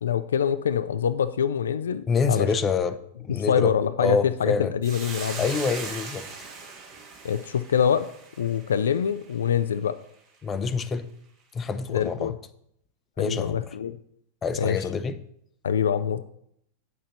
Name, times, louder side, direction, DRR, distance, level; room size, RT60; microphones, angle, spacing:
voice 1, 0.0-2.5 3.3-5.4 7.2-8.1 8.4-9.9 11.9-12.4 13.2-14.0 14.6-14.8 15.6-16.2, left 8 dB, 65° left, 12 dB, 0.3 m, -25 dB
voice 2, 2.1-3.0 3.2-3.7 4.0-4.7 5.4-6.3 10.4-11.1 11.5-12.3 13.2-13.6 14.4-15.2, left 5 dB, 20° left, 13 dB, 0.6 m, -26 dB
Hiss, 4.8-9.3, right 4 dB, 35° right, 1.6 m, -39 dB
8.4 x 6.3 x 4.0 m, 0.71 s
figure-of-eight pair, 90°, 0 cm